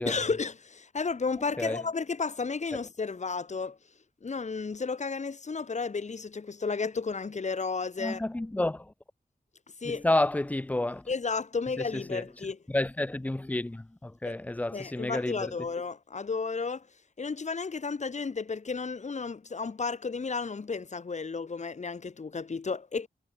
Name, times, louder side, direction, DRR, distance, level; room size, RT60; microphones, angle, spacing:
voice 1, 0.0-3.8 4.2-8.2 9.8-10.0 11.1-12.6 14.3-14.4 14.7-16.9 17.2-23.1, left 4 dB, 50° left, 0.8 m, -33 dB
voice 2, 8.0-8.9 9.8-11.1 11.9-12.2 12.7-15.5, left 1 dB, 10° left, 0.4 m, -30 dB
wide cardioid pair, 105°, 16 cm